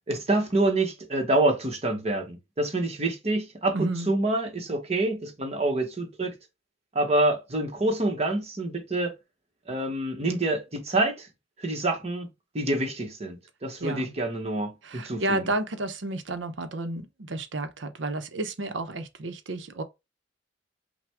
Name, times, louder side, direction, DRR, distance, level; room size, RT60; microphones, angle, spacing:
voice 1, 0.1-6.3 6.9-9.1 9.7-11.3 11.6-12.3 12.5-15.4, right 2 dB, 35° right, 1.1 m, -27 dB
voice 2, 3.7-4.1 13.8-14.1 14.8-19.8, right 2 dB, 80° right, 0.8 m, -31 dB
5.8 x 2.2 x 3.5 m
head